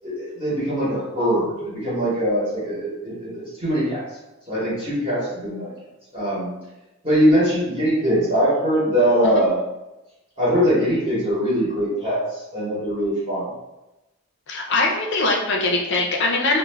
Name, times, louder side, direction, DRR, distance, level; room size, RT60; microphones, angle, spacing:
voice 1, 0.0-4.0 4.5-5.7 6.1-6.5 7.0-9.6 10.4-13.5, equal, 25° right, -9 dB, 0.8 m, -22 dB
voice 2, 14.5-16.6, left 2 dB, 55° left, 0 dB, 0.4 m, -22 dB
2.2 x 2.1 x 3.2 m, 0.99 s
head